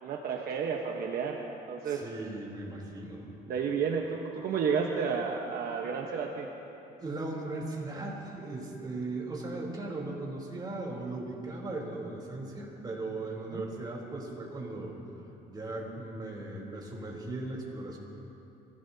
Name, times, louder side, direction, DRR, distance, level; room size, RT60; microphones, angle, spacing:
voice 1, 0.0-1.4 1.7-2.1 3.5-6.5 13.5-13.6, right 6 dB, 65° right, 1 dB, 1.2 m, -31 dB
voice 2, 1.8-3.3 7.0-15.0 15.5-18.0, right 2 dB, 25° right, -2 dB, 3.6 m, -38 dB
24.5 x 16.5 x 2.8 m, 3.0 s
cardioid pair, 110°, 17 cm